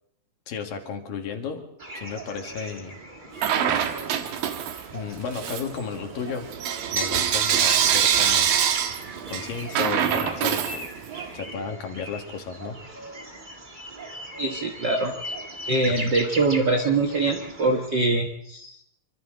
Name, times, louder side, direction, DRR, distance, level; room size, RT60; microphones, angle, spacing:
voice 1, 0.5-1.7 2.0-3.0 4.9-6.5 6.9-8.6 9.3-10.9 11.3-12.8, left 6 dB, 75° left, 4 dB, 3.8 m, -33 dB
sound 1, 1.8-17.9, right 1 dB, 20° right, 1.4 m, -39 dB
Bell / Coin (dropping), 3.4-4.9 5.3-11.3, right 9 dB, 80° right, 3.1 m, -24 dB
voice 2, 14.4-15.1 15.7-18.7, right 3 dB, 60° right, 4 dB, 1.1 m, -23 dB
27.5 x 25.5 x 3.9 m, 0.76 s
omnidirectional pair, 4.1 m